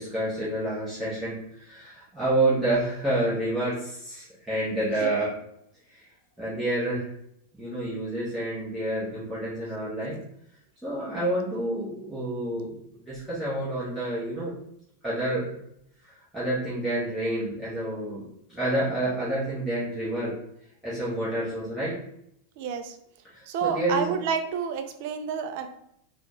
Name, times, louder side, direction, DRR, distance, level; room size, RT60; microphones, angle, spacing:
voice 1, 0.0-5.3 5.9-6.0 6.4-7.1 7.5-10.2 10.8-12.7 13.1-14.5 15.0-15.5 16.0-18.2 18.5-20.4 20.8-22.0 23.3-24.1, right 1 dB, 5° right, -11 dB, 1.2 m, -28 dB
voice 2, 22.6-23.0 23.5-25.7, right 7 dB, 50° right, 7 dB, 0.4 m, -29 dB
4.1 x 2.3 x 3.1 m, 0.74 s
figure-of-eight pair, 90°, 0 cm